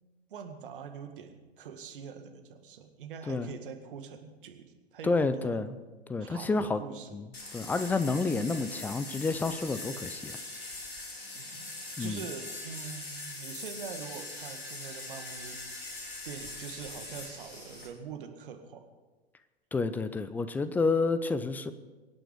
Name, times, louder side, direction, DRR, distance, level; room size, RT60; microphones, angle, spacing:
voice 1, 0.3-5.6 6.2-7.1 11.3-11.7 12.0-18.8, right 6 dB, 55° right, 6 dB, 2.0 m, -44 dB
voice 2, 5.0-5.8 6.1-6.8 7.1-7.3 7.5-10.4 12.0-12.2 19.7-21.7, left 3 dB, 5° left, 13 dB, 0.4 m, -29 dB
sound 1, 7.3-17.9, left 2 dB, 70° left, 3.3 m, -42 dB
24.0 x 9.1 x 5.2 m, 1.3 s
figure-of-eight pair, 105°, 32 cm